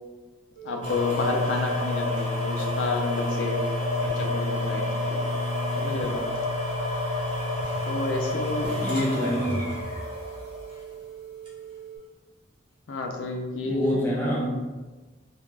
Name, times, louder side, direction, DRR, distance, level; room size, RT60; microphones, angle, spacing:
voice 1, 0.6-3.6 4.0-4.9 5.8-6.2 7.8-8.7 12.9-14.1, left 3 dB, 75° left, 3 dB, 0.4 m, -30 dB
sound 1, 0.6-12.0, right 10 dB, 50° right, 0.8 m, -42 dB
sound 2, 0.8-10.8 11.5-11.6, left 2 dB, 25° right, 0.7 m, -29 dB
voice 2, 8.8-9.8 13.7-14.5, equal, 10° left, -5 dB, 0.4 m, -27 dB
2.3 x 2.2 x 3.1 m, 1.2 s
head